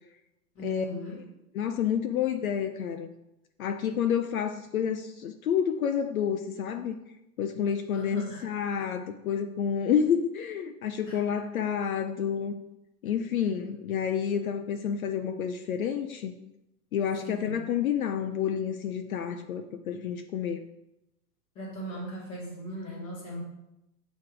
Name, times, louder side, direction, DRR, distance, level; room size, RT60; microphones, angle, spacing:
voice 1, 0.5-1.3 7.9-8.4 11.0-11.2 13.4-13.7 17.2-17.7 21.5-23.4, equal, 10° left, -5 dB, 0.9 m, -39 dB
voice 2, 1.5-3.1 3.6-6.9 7.4-12.5 13.0-16.3 16.9-20.6, left 8 dB, 60° left, 6 dB, 0.5 m, -29 dB
7.7 x 3.1 x 4.8 m, 0.88 s
hypercardioid pair, 175°, 49 cm